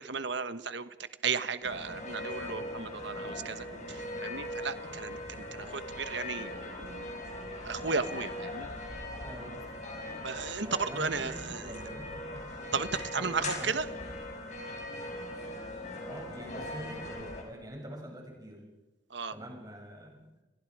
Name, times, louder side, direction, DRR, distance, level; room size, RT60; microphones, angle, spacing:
voice 1, 0.0-6.5 6.8-7.3 7.6-8.7 10.2-11.6 12.7-13.9 19.1-19.3, right 5 dB, 70° right, 12 dB, 1.2 m, -35 dB
sound 1, 1.6-17.4, left 1 dB, 40° left, 4.9 m, -40 dB
voice 2, 9.2-9.5 10.6-12.4 13.1-14.0 16.1-18.6 19.3-20.2, equal, 20° right, 0 dB, 6.9 m, -44 dB
29.5 x 23.0 x 4.9 m, 1.0 s
head